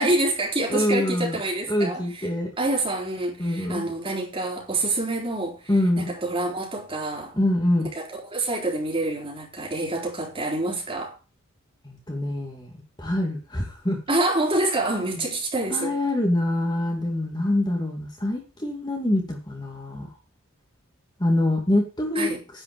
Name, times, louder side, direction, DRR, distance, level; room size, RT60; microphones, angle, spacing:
voice 1, 0.0-2.0 2.6-5.6 6.0-7.3 7.9-11.1 14.1-15.9 22.2-22.4, right 2 dB, 25° right, 4.1 m, -26 dB
voice 2, 0.7-1.4 1.7-2.5 3.4-3.9 5.7-6.1 7.3-7.9 11.8-12.7 13.0-14.0 15.2-15.3 15.7-20.1 21.2-22.3, left 1 dB, 20° left, 2.4 m, -25 dB
10.5 x 5.8 x 7.7 m
head